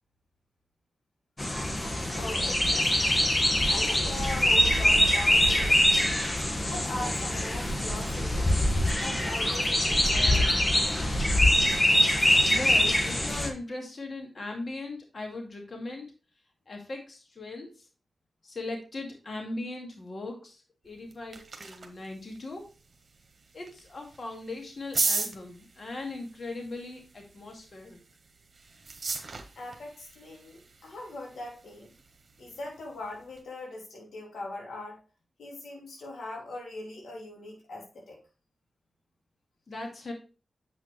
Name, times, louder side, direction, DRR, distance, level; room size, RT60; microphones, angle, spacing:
sound 1, 1.4-13.5, left 1 dB, 30° left, 1.6 m, -24 dB
voice 1, 2.1-3.2 3.6-6.2 6.6-8.6 9.0-11.6 29.5-31.9 32.4-35.0 35.4-38.2, left 2 dB, 85° left, -1 dB, 2.9 m, -41 dB
voice 2, 12.5-16.1 16.7-17.9 18.4-22.7 23.5-28.0 39.7-40.1, left 2 dB, 60° left, 2 dB, 2.3 m, -39 dB
sound 2, 20.9-33.4, right 4 dB, 60° right, 1.3 m, -38 dB
8.1 x 6.0 x 3.3 m, 0.32 s
cardioid pair, 50°, 0 cm